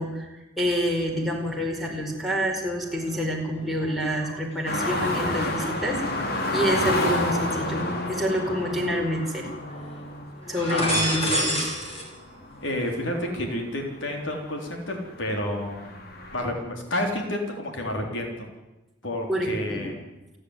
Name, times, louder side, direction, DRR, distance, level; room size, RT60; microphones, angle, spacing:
voice 1, 0.0-6.0 6.5-9.5 10.5-11.7 19.3-19.9, equal, ahead, -2 dB, 4.8 m, -27 dB
sound 1, 1.0-1.9 2.3-7.9 8.4-9.4 9.7-9.9 10.4-12.0 12.3-13.0, equal, 35° left, 5.5 m, -33 dB
sound 2, 4.7-13.8 14.2-14.3 14.7-16.5, left 1 dB, 55° left, 3.0 m, -29 dB
voice 2, 10.7-11.4 12.6-15.9 16.3-18.5 19.0-20.0, left 1 dB, 80° left, 2 dB, 3.7 m, -30 dB
29.0 x 10.5 x 9.8 m, 1.0 s
head